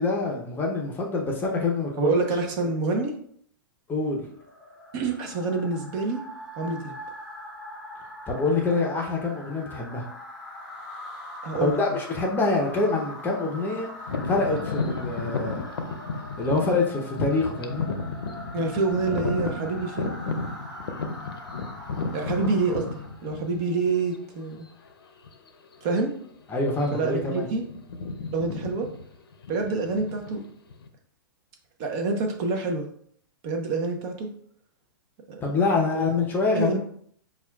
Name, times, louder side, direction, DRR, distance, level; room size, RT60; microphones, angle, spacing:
voice 1, 0.0-2.1 3.9-4.3 8.3-10.1 11.6-13.9 14.3-15.6 16.4-17.9 26.5-27.5 35.4-36.8, left 3 dB, 15° left, 0 dB, 0.6 m, -25 dB
voice 2, 2.0-3.2 4.9-6.2 6.6-6.9 11.4-11.8 18.5-20.2 22.1-22.9 23.2-24.7 25.8-26.2 26.9-27.6 28.3-28.9 29.5-30.4 31.8-32.9 33.4-34.3 35.3-35.4 35.9-36.1 36.5-36.8, right 3 dB, 40° right, 3 dB, 0.7 m, -27 dB
sound 1, 4.3-23.2, left 1 dB, 5° right, 1.0 m, -42 dB
sound 2, 14.1-23.8 24.5-24.6 25.2-25.5 25.8-26.0 26.6-27.2 27.5-30.9, left 4 dB, 85° left, 0.6 m, -33 dB
5.6 x 2.3 x 2.3 m, 0.63 s
hypercardioid pair, 125°, 12 cm